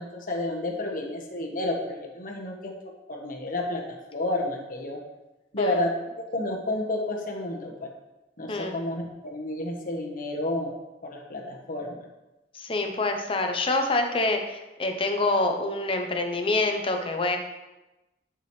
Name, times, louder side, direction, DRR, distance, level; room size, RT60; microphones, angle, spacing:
voice 1, 0.0-2.7 3.1-3.8 4.1-5.0 5.5-5.9 6.3-7.9 8.4-10.7 11.0-12.0, left 2 dB, 50° left, 1 dB, 1.2 m, -30 dB
voice 2, 12.5-17.4, left 2 dB, 30° left, 4 dB, 0.8 m, -26 dB
9.8 x 5.0 x 3.3 m, 1.0 s
head